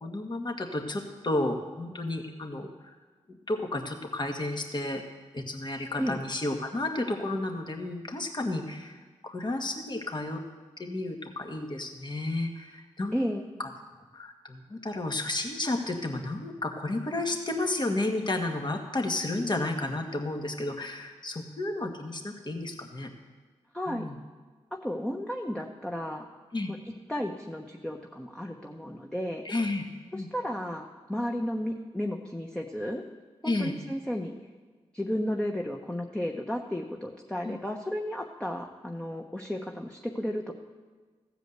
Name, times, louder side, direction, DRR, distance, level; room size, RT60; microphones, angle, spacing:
voice 1, 0.0-2.9 3.3-5.0 5.3-9.0 9.2-10.4 10.8-13.2 13.6-13.7 14.1-23.1 23.9-24.2 26.5-26.7 29.4-29.9 30.1-30.3 33.4-33.7 37.4-37.6, left 2 dB, 40° left, 4 dB, 1.8 m, -32 dB
voice 2, 13.1-13.5 23.7-24.1 24.7-26.3 26.7-26.8 27.1-29.5 30.1-33.0 33.4-34.3 34.9-40.5, equal, 5° left, 1 dB, 1.1 m, -33 dB
14.5 x 5.0 x 8.1 m, 1.4 s
supercardioid pair, 45°, 12 cm